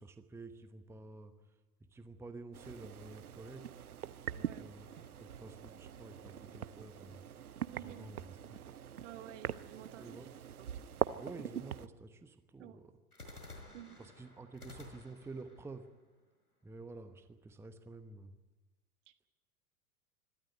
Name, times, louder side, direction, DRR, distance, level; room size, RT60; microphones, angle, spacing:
voice 1, 0.0-3.7 4.3-4.9 5.2-7.2 7.7-8.6 8.9-9.0 9.8-10.3 11.2-12.9 14.0-15.9 16.6-18.4, right 3 dB, 5° right, 9 dB, 1.0 m, -50 dB
sound 1, 2.5-11.9, right 9 dB, 75° right, 0.8 m, -42 dB
voice 2, 4.3-4.7 7.7-8.0 9.0-10.2 10.6-10.7 11.0-11.2 12.6-12.8 13.7-14.0, right 12 dB, 55° right, 9 dB, 1.7 m, -51 dB
sound 2, 4.9-6.3 13.1-17.1, left 2 dB, 85° left, 5.1 m, -55 dB
24.5 x 13.0 x 9.9 m, 1.2 s
figure-of-eight pair, 90°, 45 cm